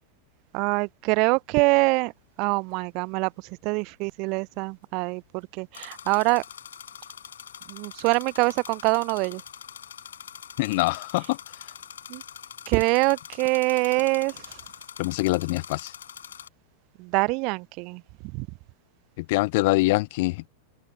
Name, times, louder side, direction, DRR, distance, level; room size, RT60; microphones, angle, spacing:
voice 1, 0.5-2.1 2.4-3.3 3.6-5.2 5.6-6.4 7.7-9.4 12.1-12.2 12.7-14.3 17.0-18.0 18.4-18.5, right 29 dB, 45° right, 0.7 m, -24 dB
sound 1, 1.9-2.0 5.7-16.5, left 8 dB, 65° left, 7.6 m, -44 dB
voice 2, 10.6-11.4 15.0-15.9 19.2-20.5, left 22 dB, 50° left, 0.8 m, -24 dB
open air
figure-of-eight pair, 90°, 0 cm